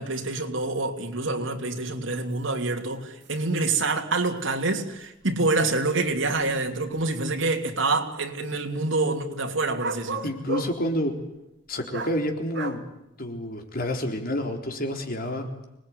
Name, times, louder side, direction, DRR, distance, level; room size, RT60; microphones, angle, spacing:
voice 1, 0.0-10.3, right 3 dB, 80° right, 2.9 m, -26 dB
sound 1, 2.3-2.4 2.9-3.0 3.2-3.4 4.3-4.4 5.2-5.3 6.0-7.0 9.8-10.8 11.9-12.2 12.5-12.8, right 2 dB, 65° right, 2.5 m, -33 dB
voice 2, 10.2-11.2 11.7-12.8 13.2-15.5, left 1 dB, 50° left, 3.9 m, -29 dB
26.0 x 20.0 x 9.7 m
head